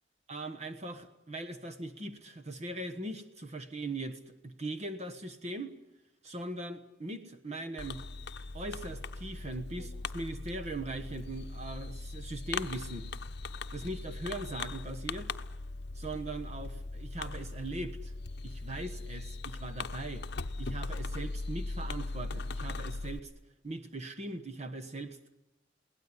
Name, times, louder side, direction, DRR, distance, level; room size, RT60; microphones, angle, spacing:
voice 1, 0.3-5.7 6.2-8.0 8.5-13.1 13.7-15.3 15.9-18.1 18.4-20.3 20.6-23.3 23.6-25.3, right 2 dB, 35° right, 8 dB, 1.3 m, -40 dB
Fireworks, 7.8-23.2, left 3 dB, 60° left, 0.8 m, -39 dB
22.0 x 18.0 x 9.8 m, 0.95 s
head